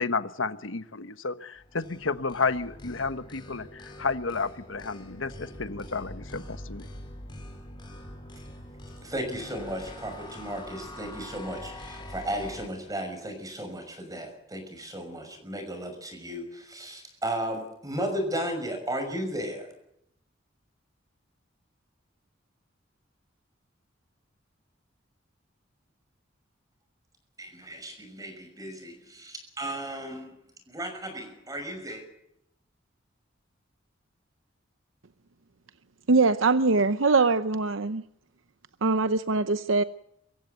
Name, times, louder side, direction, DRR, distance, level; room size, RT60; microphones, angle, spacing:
voice 1, 0.0-6.9, left 4 dB, 90° left, 11 dB, 1.2 m, -31 dB
sound 1, 1.6-12.7, left 1 dB, 25° left, 4.3 m, -44 dB
voice 2, 9.0-19.7 27.4-30.4 30.7-32.0, right 1 dB, 20° right, 6 dB, 6.1 m, -35 dB
voice 3, 36.1-38.0 38.8-39.8, right 3 dB, 85° right, 11 dB, 0.8 m, -22 dB
24.0 x 15.5 x 9.4 m, 0.79 s
head